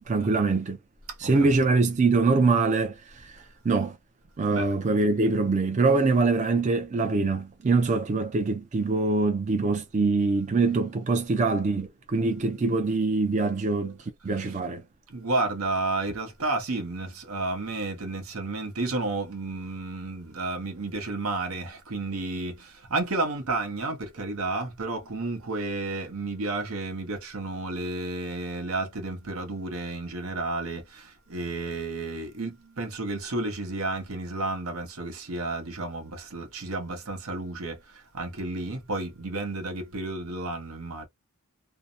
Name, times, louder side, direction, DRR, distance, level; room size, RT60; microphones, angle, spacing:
voice 1, 0.1-0.8 1.2-4.0 4.4-14.0 14.2-14.8, right 3 dB, 35° right, 0.4 m, -24 dB
voice 2, 15.1-41.1, right 2 dB, 80° right, 0.8 m, -32 dB
2.6 x 2.0 x 2.5 m
head